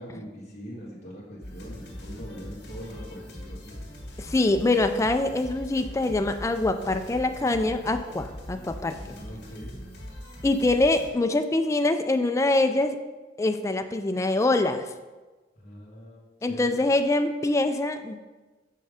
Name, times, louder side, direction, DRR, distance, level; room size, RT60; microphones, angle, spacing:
voice 1, 0.0-3.7 9.1-9.8 15.6-16.7, equal, 40° left, -6 dB, 1.4 m, -42 dB
sound 1, 1.4-11.1, equal, 65° left, 1.9 m, -41 dB
voice 2, 4.2-9.0 10.4-13.0 13.4-14.8 16.4-18.2, left 2 dB, 15° left, 7 dB, 0.3 m, -24 dB
6.4 x 5.6 x 4.9 m, 1.2 s
head